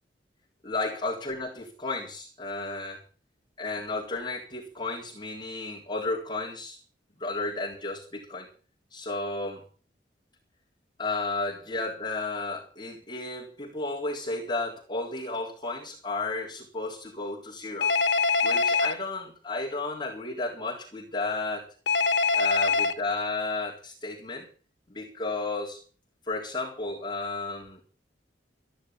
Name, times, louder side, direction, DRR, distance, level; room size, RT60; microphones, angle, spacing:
voice 1, 0.6-3.0 3.6-6.8 7.2-8.5 8.9-9.7 11.0-17.9 18.4-21.7 22.3-24.5 24.9-25.8 26.3-27.8, left 3 dB, 25° left, 3.8 m, -33 dB
Telephone, 17.8-18.9 21.9-22.9, left 4 dB, 80° left, 1.7 m, -23 dB
14.0 x 11.0 x 7.4 m
head